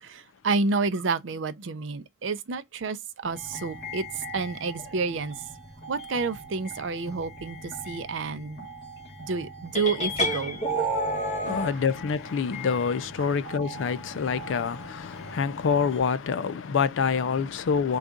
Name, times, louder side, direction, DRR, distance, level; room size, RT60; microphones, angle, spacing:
voice 1, 0.0-5.4 5.9-8.7 9.2-10.6 11.5-11.6 13.2-13.3, right 4 dB, 70° right, 0.5 m, -30 dB
sound 1, 3.2-16.0, right 2 dB, 55° left, 2.0 m, -40 dB
sound 2, 9.7-11.7, equal, 35° left, 1.2 m, -28 dB
voice 2, 11.4-18.0, left 6 dB, 70° left, 0.4 m, -26 dB
3.9 x 2.4 x 3.6 m
head